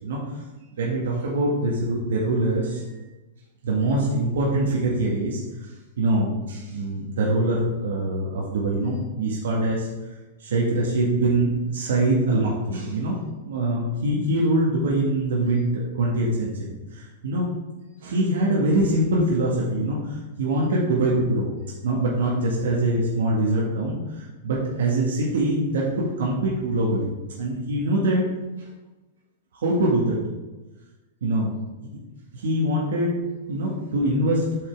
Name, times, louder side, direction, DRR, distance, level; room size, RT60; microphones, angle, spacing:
voice 1, 0.8-3.0 3.6-5.4 6.0-9.9 10.4-13.2 13.4-17.5 18.0-21.5 21.8-28.2 29.5-30.3 31.2-31.6 32.3-34.6, right 1 dB, 85° right, -4 dB, 1.7 m, -24 dB
8.4 x 5.6 x 3.6 m, 1.1 s
supercardioid pair, 180°, 0 cm